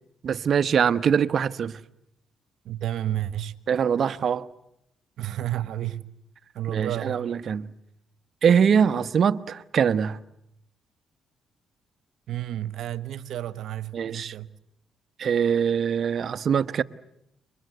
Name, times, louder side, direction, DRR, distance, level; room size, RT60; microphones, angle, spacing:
voice 1, 0.2-1.8 3.7-4.5 6.7-7.7 8.4-10.2 13.9-14.3 15.2-16.8, right 7 dB, 55° right, 1.1 m, -23 dB
voice 2, 2.6-3.5 5.2-6.1 6.5-7.2 12.3-14.5, right 12 dB, 75° right, 1.3 m, -31 dB
29.5 x 24.0 x 8.0 m
cardioid pair, 90°, 0 cm